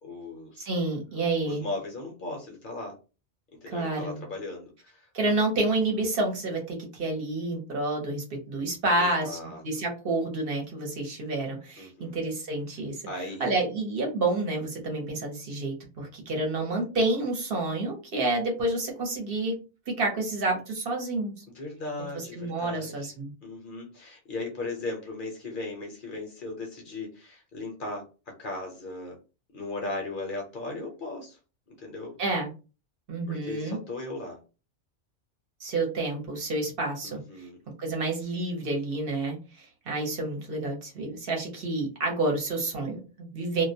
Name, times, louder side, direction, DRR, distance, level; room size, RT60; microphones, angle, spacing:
voice 1, 0.0-0.6 1.4-3.0 3.6-5.1 9.0-9.6 11.8-12.2 13.1-13.5 21.5-23.1 23.4-29.2 29.5-31.4 31.7-32.2 33.3-34.4 37.0-37.6, left 2 dB, 55° left, 1 dB, 0.7 m, -37 dB
voice 2, 0.6-1.6 3.7-4.2 5.1-13.0 13.4-19.6 19.9-21.4 22.1-23.3 32.2-32.5 33.1-33.8 35.6-37.2 37.8-43.6, right 2 dB, 55° right, 1 dB, 0.9 m, -29 dB
2.2 x 2.1 x 2.6 m, 0.32 s
omnidirectional pair, 1.2 m